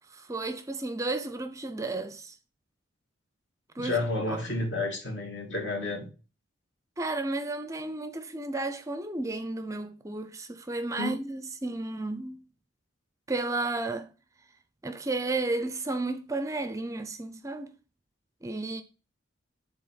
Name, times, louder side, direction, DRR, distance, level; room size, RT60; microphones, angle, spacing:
voice 1, 0.1-2.4 3.8-4.0 4.3-4.4 7.0-12.4 13.3-14.1 14.8-17.7 18.4-18.8, right 2 dB, 15° right, 0.4 m, -33 dB
voice 2, 3.8-6.1 11.0-11.2, left 2 dB, 65° left, 2.3 m, -31 dB
6.8 x 4.1 x 5.8 m
head